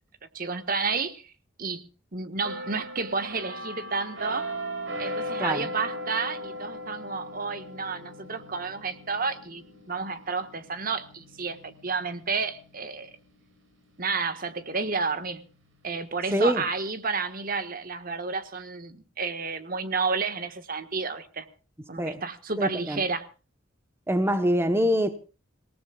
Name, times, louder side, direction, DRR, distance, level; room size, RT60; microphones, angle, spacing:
voice 1, 0.3-1.3 1.6-4.5 5.0-13.2 14.0-15.4 15.8-21.4 21.9-23.3, right 4 dB, 50° right, 1.5 m, -31 dB
sound 1, 2.4-14.0 14.4-14.7, equal, 80° right, 4.6 m, -38 dB
voice 2, 16.3-16.6 22.0-22.2 22.6-23.0 24.1-25.2, equal, 10° right, 1.1 m, -24 dB
27.0 x 18.5 x 2.4 m
head